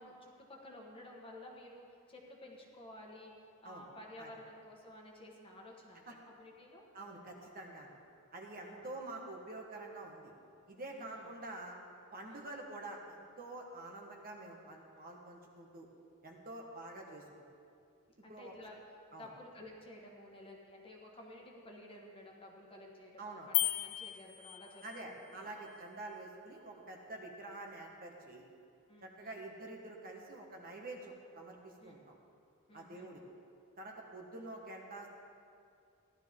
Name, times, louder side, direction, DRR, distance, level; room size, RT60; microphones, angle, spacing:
voice 1, 0.0-6.8 8.6-9.0 10.9-11.3 12.3-12.5 18.2-18.8 19.1-25.5 27.2-27.3 28.9-29.4 31.8-32.0 32.7-33.1, left 1 dB, 25° left, -1 dB, 1.5 m, -53 dB
voice 2, 6.9-7.9 8.3-10.3 10.7-11.8 12.1-15.9 16.2-17.4 18.3-18.5 19.1-19.3 23.2-23.5 24.8-28.4 29.0-32.2 32.7-33.2 33.8-35.1, right 2 dB, 40° right, 0 dB, 1.4 m, -47 dB
sound 1, 23.5-25.1, left 16 dB, 90° left, 0.5 m, -35 dB
16.0 x 12.0 x 3.7 m, 2.4 s
head